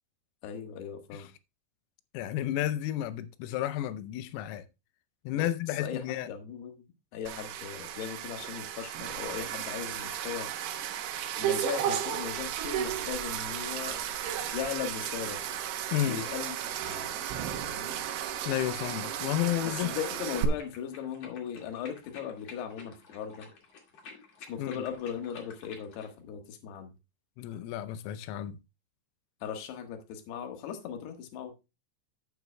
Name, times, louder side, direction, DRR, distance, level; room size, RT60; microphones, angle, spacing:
voice 1, 0.4-1.3 5.3-5.5 5.8-6.8 7.1-10.5 11.4-14.0 14.5-15.4 16.1-17.1 17.6-18.0 19.6-23.5 24.5-26.9 29.4-31.5, left 8 dB, 65° left, 3.1 m, -38 dB
voice 2, 2.1-4.6 5.2-6.3 15.9-16.2 18.4-19.9 24.6-24.8 27.4-28.6, left 13 dB, 90° left, 3.4 m, -32 dB
sound 1, 7.3-20.4, right 10 dB, 85° right, 3.8 m, -34 dB
sound 2, 20.0-26.1, left 5 dB, 50° left, 2.0 m, -51 dB
12.0 x 9.5 x 2.2 m
omnidirectional pair, 5.8 m